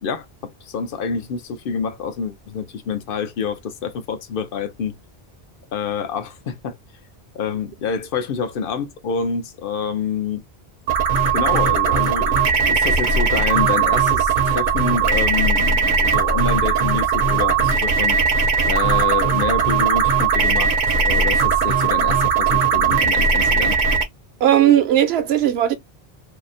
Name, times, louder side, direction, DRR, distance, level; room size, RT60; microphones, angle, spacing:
voice 1, 0.0-5.0 5.7-6.8 7.3-10.4 11.3-18.2 18.6-23.8, left 6 dB, 65° left, 0.7 m, -27 dB
sound 1, 10.9-24.0, right 5 dB, 55° right, 0.7 m, -18 dB
voice 2, 24.4-25.7, right 11 dB, 80° right, 0.9 m, -16 dB
2.7 x 2.0 x 2.5 m
omnidirectional pair, 1.0 m